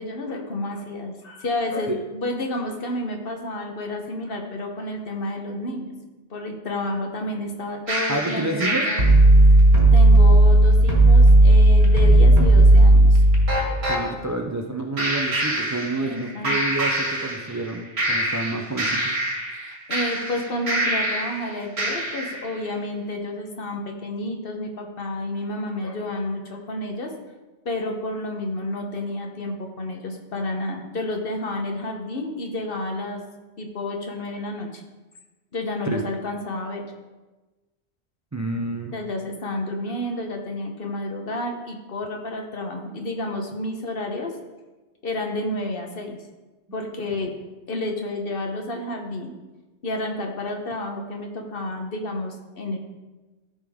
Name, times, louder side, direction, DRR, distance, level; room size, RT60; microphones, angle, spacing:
voice 1, 0.0-5.9 6.3-9.1 9.9-13.2 16.0-16.5 19.6-27.1 27.6-33.2 33.6-34.8 35.5-36.8 38.9-44.3 45.0-46.2 46.7-47.3 47.7-49.3 49.8-52.8, left 1 dB, 55° left, 3 dB, 1.2 m, -30 dB
sound 1, 7.9-14.0 15.0-16.2 16.4-17.7 18.0-21.4 21.8-22.4, right 1 dB, 60° right, 2.1 m, -16 dB
voice 2, 8.1-8.9 13.9-19.0 35.9-36.0 38.3-39.0, right 2 dB, 25° right, 2 dB, 0.3 m, -29 dB
13.0 x 5.1 x 3.6 m, 1.2 s
omnidirectional pair, 1.2 m